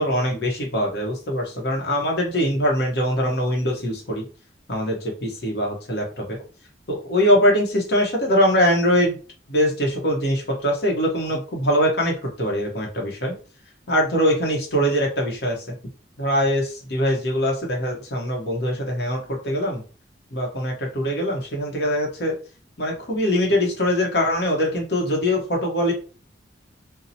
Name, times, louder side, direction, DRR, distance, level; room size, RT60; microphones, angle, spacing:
voice 1, 0.0-4.2 4.7-6.4 6.9-9.2 9.5-13.3 13.9-15.6 16.2-19.8 20.3-22.4 22.8-25.9, equal, 65° left, 0 dB, 0.9 m, -22 dB
2.7 x 2.0 x 2.7 m, 0.36 s
head